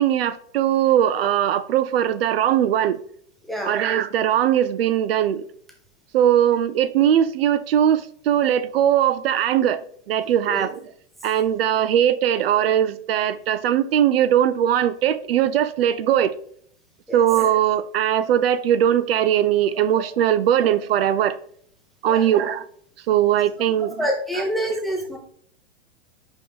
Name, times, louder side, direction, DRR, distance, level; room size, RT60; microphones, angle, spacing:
voice 1, 0.0-3.0 3.7-5.4 6.1-9.8 10.1-10.7 11.2-16.3 17.1-21.4 22.0-22.6 23.1-23.9, right 10 dB, 60° right, 0.5 m, -20 dB
voice 2, 3.5-3.8 10.5-10.7 17.1-17.2 19.8-20.0 22.0-22.3 24.0-25.2, equal, ahead, 0.5 m, -27 dB
5.4 x 5.4 x 3.5 m
hypercardioid pair, 155°, 35 cm